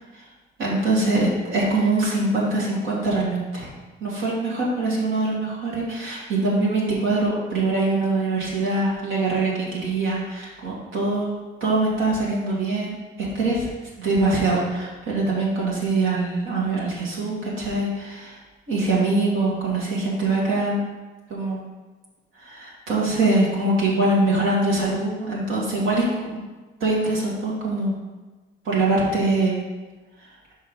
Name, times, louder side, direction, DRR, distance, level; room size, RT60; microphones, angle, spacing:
voice 1, 0.6-3.7 4.0-13.7 14.0-18.3 18.7-20.9 21.3-21.6 22.4-26.4 26.8-27.9 28.6-29.5, right 2 dB, 85° right, -5 dB, 2.1 m, -23 dB
5.4 x 4.6 x 5.4 m, 1.2 s
cardioid pair, 90°, 20 cm